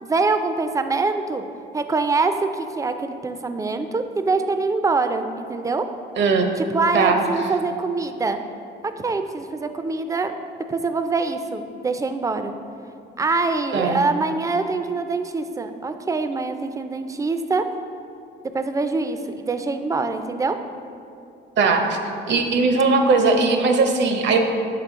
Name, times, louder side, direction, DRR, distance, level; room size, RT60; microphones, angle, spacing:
voice 1, 0.0-1.4 1.7-5.9 6.6-8.4 9.0-10.3 10.7-12.5 13.2-17.6 18.5-20.6, right 3 dB, 15° right, 8 dB, 0.3 m, -24 dB
voice 2, 6.2-6.5 6.9-7.3 13.7-14.0 21.6-22.0 22.3-24.4, right 4 dB, 65° right, 5 dB, 0.7 m, -19 dB
6.7 x 4.3 x 3.6 m, 2.5 s
cardioid pair, 90°, 20 cm